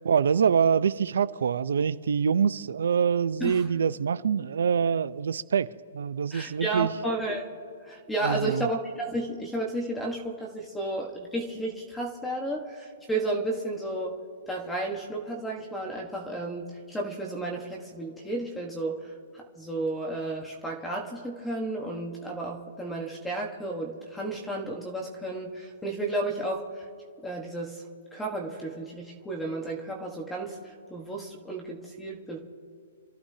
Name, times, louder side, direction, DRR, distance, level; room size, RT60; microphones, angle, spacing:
voice 1, 0.0-6.9 8.2-8.7, right 7 dB, 80° right, 0.6 m, -25 dB
voice 2, 6.3-7.4 7.8-14.2 14.5-19.1 19.3-26.6 27.2-27.8 28.1-32.4, right 2 dB, 5° left, 1.3 m, -32 dB
27.5 x 14.5 x 2.8 m
hypercardioid pair, 170°, 0 cm